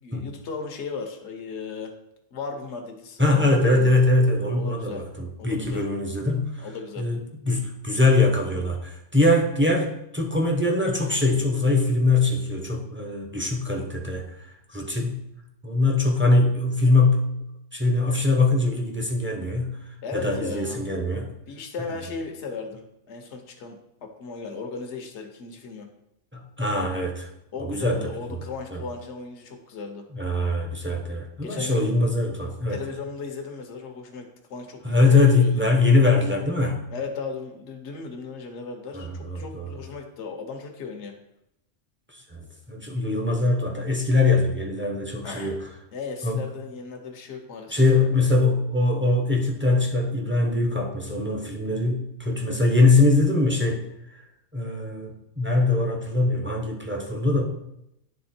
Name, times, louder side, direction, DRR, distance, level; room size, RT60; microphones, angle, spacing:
voice 1, 0.0-1.9 2.3-4.0 4.6-5.0 5.4-5.8 6.6-7.1 20.0-20.8 21.5-25.9 27.5-30.0 31.4-31.9 32.7-35.0 35.3-35.7 36.9-41.1 45.2-45.6 45.9-48.1, left 4 dB, 70° left, 3 dB, 1.1 m, -36 dB
voice 2, 3.2-6.7 7.0-15.2 15.6-17.3 17.7-19.8 20.1-21.3 26.3-27.3 27.6-28.0 28.7-28.8 30.1-32.8 34.8-36.8 38.9-39.7 42.1-45.6 46.2-46.4 47.7-53.8 54.5-57.4, left 2 dB, 10° right, 1 dB, 0.7 m, -22 dB
9.6 x 3.6 x 4.3 m, 0.83 s
omnidirectional pair, 1.2 m